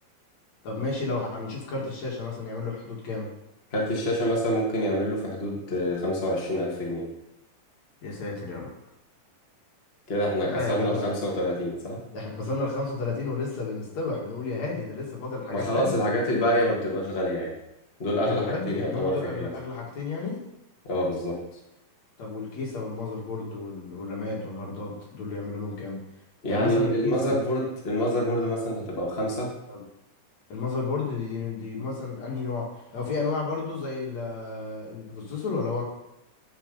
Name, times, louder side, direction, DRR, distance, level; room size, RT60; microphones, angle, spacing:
voice 1, 0.6-3.3 8.0-8.7 10.6-11.1 12.1-16.0 18.2-20.4 22.2-26.0 26.4-27.3 29.7-29.8 30.5-35.8, left 3 dB, 55° left, -3 dB, 3.1 m, -32 dB
voice 2, 3.7-7.0 10.1-12.0 15.5-17.5 18.0-19.5 20.8-21.4 26.4-29.5, equal, 25° left, -3 dB, 1.5 m, -26 dB
10.5 x 5.1 x 5.4 m, 0.88 s
omnidirectional pair, 3.8 m